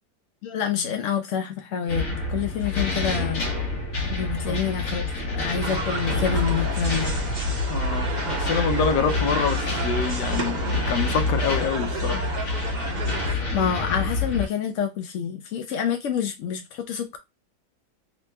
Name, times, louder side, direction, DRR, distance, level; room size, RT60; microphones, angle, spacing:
voice 1, 0.4-3.4 4.1-5.1 5.3-7.2 13.2-17.2, left 8 dB, 75° left, 0.7 m, -27 dB
sound 1, 1.9-14.5, left 2 dB, 55° left, 1.2 m, -27 dB
sound 2, 5.6-13.3, right 4 dB, 60° right, 0.4 m, -33 dB
voice 2, 7.7-12.2, left 6 dB, 90° left, 1.2 m, -26 dB
3.1 x 3.0 x 3.1 m
omnidirectional pair, 1.8 m